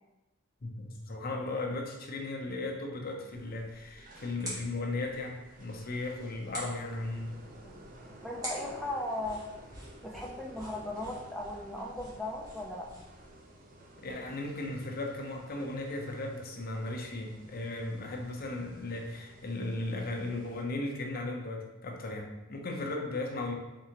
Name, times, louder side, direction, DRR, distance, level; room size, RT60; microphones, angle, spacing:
voice 1, 0.6-7.3 14.0-23.6, left 2 dB, 50° left, 1 dB, 0.7 m, -36 dB
sound 1, 3.3-13.3, equal, 20° right, 1.5 m, -47 dB
sound 2, 3.3-20.6, right 1 dB, 45° right, 0.7 m, -54 dB
voice 2, 8.2-9.4 10.0-12.9, left 1 dB, ahead, -2 dB, 0.5 m, -37 dB
4.8 x 3.6 x 2.9 m, 1.1 s
head